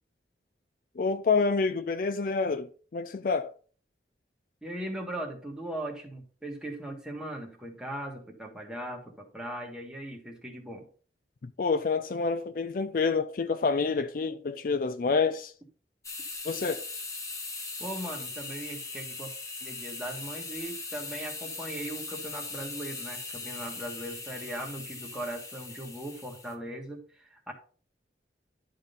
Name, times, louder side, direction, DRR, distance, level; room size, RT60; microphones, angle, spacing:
voice 1, 1.0-3.5 11.4-15.5 16.4-16.8, left 4 dB, 50° left, 0.4 m, -28 dB
voice 2, 4.6-10.9 17.8-19.3 19.6-27.5, right 1 dB, 5° right, 1.6 m, -39 dB
sound 1, 16.0-26.5, left 3 dB, 15° left, 1.0 m, -40 dB
11.0 x 3.8 x 5.3 m
head